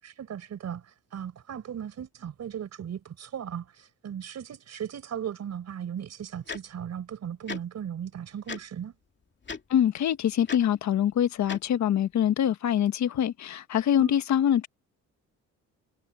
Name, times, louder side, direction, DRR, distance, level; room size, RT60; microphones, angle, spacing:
voice 1, 0.0-8.9 14.0-14.2, right 9 dB, 60° right, 5.5 m, -37 dB
Tick-tock, 6.5-6.6 7.5-7.6 8.5-8.6 9.4-9.6 10.5-10.6 11.5-11.6, left 5 dB, 35° left, 2.7 m, -35 dB
voice 2, 9.7-14.7, left 10 dB, 65° left, 1.5 m, -24 dB
cardioid pair, 90°, 30 cm